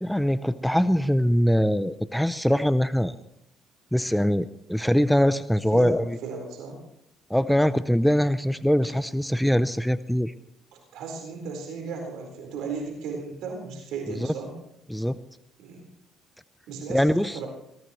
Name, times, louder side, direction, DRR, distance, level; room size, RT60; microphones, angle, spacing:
voice 1, 0.0-3.1 3.9-6.2 7.3-10.3 14.2-14.3 14.9-15.2 16.9-17.4, equal, 5° left, 13 dB, 0.6 m, -23 dB
voice 2, 5.7-6.8 8.8-8.9 10.9-14.5 15.6-15.8 16.7-17.5, right 4 dB, 75° right, 1 dB, 4.3 m, -35 dB
21.5 x 18.5 x 3.1 m, 0.77 s
supercardioid pair, 70°, 0 cm